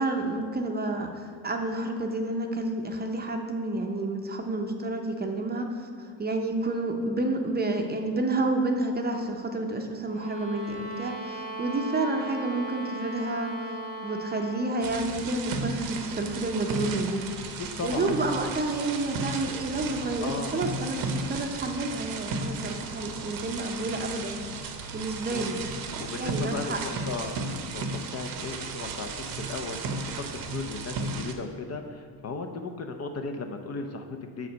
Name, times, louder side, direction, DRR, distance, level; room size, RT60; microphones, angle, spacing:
voice 1, 0.0-13.5 14.0-17.2 17.8-24.5 24.9-25.6 26.2-26.8, right 2 dB, 25° right, 4 dB, 0.7 m, -30 dB
sound 1, 10.1-14.8, right 2 dB, 20° left, 1.0 m, -37 dB
sound 2, 14.8-31.3, right 3 dB, 55° right, 0.9 m, -34 dB
voice 2, 17.6-18.1 20.2-20.6 25.3-25.5 26.0-27.9 28.1-34.5, left 4 dB, 35° left, 5 dB, 0.7 m, -36 dB
6.3 x 4.9 x 5.3 m, 2.1 s
supercardioid pair, 85°, 43 cm